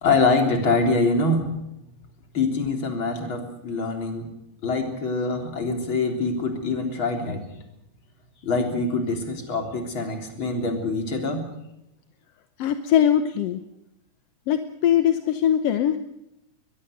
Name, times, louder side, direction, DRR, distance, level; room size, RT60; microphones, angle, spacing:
voice 1, 0.0-1.5 2.3-4.3 4.6-7.4 8.4-11.4, left 3 dB, 40° left, 4 dB, 4.1 m, -24 dB
voice 2, 12.6-13.6 14.5-16.0, left 10 dB, 65° left, 9 dB, 1.8 m, -21 dB
22.0 x 22.0 x 6.6 m, 0.83 s
omnidirectional pair, 3.4 m